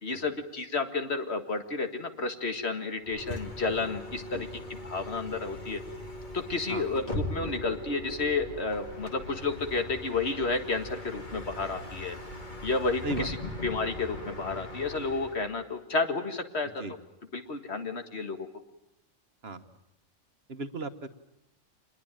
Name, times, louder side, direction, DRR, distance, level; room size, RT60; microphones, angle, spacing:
voice 1, 0.0-5.8 6.3-12.2 12.6-13.4 13.6-16.7 17.3-18.5, left 3 dB, 60° left, 7 dB, 2.1 m, -31 dB
Bus, 3.0-15.5, left 2 dB, 40° left, 2.7 m, -40 dB
voice 2, 20.5-21.1, right 2 dB, 55° right, 9 dB, 1.5 m, -35 dB
25.5 x 21.0 x 9.0 m, 0.85 s
omnidirectional pair, 1.3 m